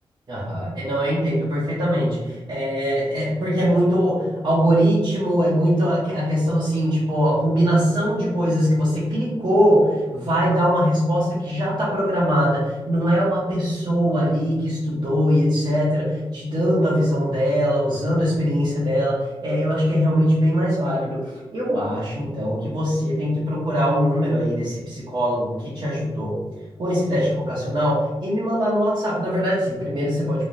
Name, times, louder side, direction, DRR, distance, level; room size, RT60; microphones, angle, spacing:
voice 1, 0.3-26.3 26.8-30.4, equal, 55° right, -11 dB, 1.2 m, -21 dB
3.2 x 3.2 x 2.7 m, 1.1 s
cardioid pair, 75°, 9 cm